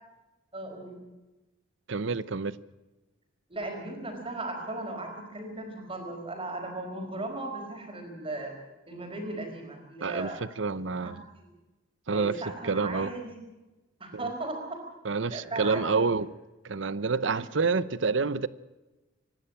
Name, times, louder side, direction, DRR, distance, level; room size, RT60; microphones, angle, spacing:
voice 1, 0.5-1.0 3.5-8.5 8.9-10.4 11.0-11.1 11.4-11.5 12.1-13.4 14.0-14.8 15.3-16.1 17.3-17.4, right 2 dB, 30° right, 4.7 m, -37 dB
voice 2, 1.9-2.6 10.0-11.2 12.1-12.3 12.6-13.1 14.1-14.3 15.0-16.3 16.6-18.5, right 4 dB, 70° right, 0.8 m, -28 dB
25.5 x 12.0 x 8.7 m
head